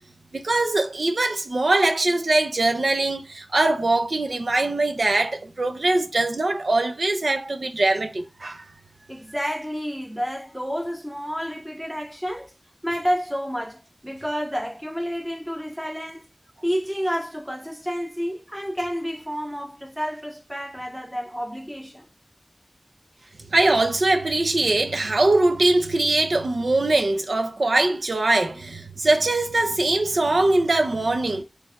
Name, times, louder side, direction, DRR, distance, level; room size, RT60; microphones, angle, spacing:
voice 1, 0.3-8.7 23.5-31.4, right 2 dB, 85° right, 0.6 m, -22 dB
voice 2, 9.1-12.5 12.8-16.3 16.6-22.0, equal, 10° right, 1.1 m, -30 dB
4.4 x 3.3 x 2.4 m
wide cardioid pair, 60°, 0 cm